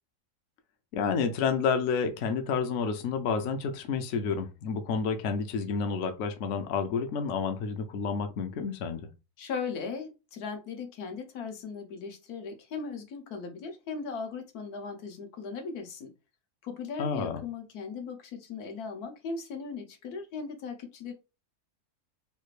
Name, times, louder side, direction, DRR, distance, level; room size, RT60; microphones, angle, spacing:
voice 1, 0.9-9.1 17.0-17.4, left 5 dB, 65° left, 0.8 m, -30 dB
voice 2, 9.4-16.1 16.6-21.1, left 5 dB, 85° left, 1.3 m, -38 dB
3.3 x 2.4 x 3.1 m
omnidirectional pair, 1.6 m